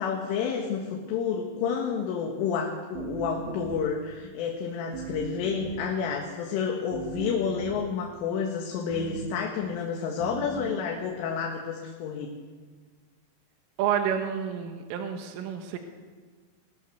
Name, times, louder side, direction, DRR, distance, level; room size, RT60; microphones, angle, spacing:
voice 1, 0.0-12.3, left 6 dB, 85° left, 1 dB, 4.2 m, -30 dB
sound 1, 2.9-4.1 4.9-6.0 6.9-8.0 8.9-9.5 10.2-10.8, right 7 dB, 70° right, 3.1 m, -39 dB
voice 2, 13.8-15.8, right 8 dB, 90° right, 5 dB, 4.0 m, -29 dB
23.0 x 19.5 x 6.8 m, 1.5 s
omnidirectional pair, 5.6 m